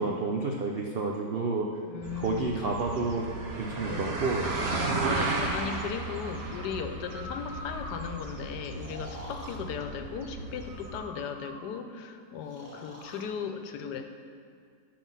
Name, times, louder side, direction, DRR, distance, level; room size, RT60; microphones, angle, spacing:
voice 1, 0.0-1.7 2.2-3.3 3.6-4.5, right 3 dB, 75° right, 0 dB, 0.5 m, -30 dB
voice 2, 1.8-2.5 3.9-14.1, left 7 dB, 85° left, 7 dB, 1.2 m, -37 dB
sound 1, 2.0-11.0, right 3 dB, 50° right, 0.9 m, -34 dB
Breathing, 4.8-5.9 6.9-8.2 8.7-9.6 10.6-11.8 12.5-13.3, equal, 10° right, 1.6 m, -44 dB
9.1 x 4.9 x 5.5 m, 2.2 s
omnidirectional pair, 1.8 m